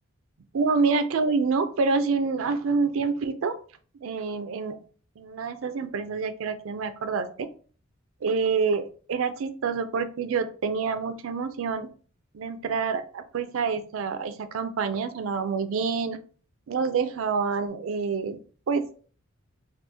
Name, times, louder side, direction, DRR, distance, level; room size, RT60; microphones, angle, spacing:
voice 1, 0.5-3.6 4.0-4.8 5.2-7.5 8.2-11.9 12.3-16.2 16.7-18.4 18.7-19.1, right 5 dB, 75° right, 10 dB, 0.4 m, -27 dB
2.9 x 2.3 x 3.3 m, 0.41 s
head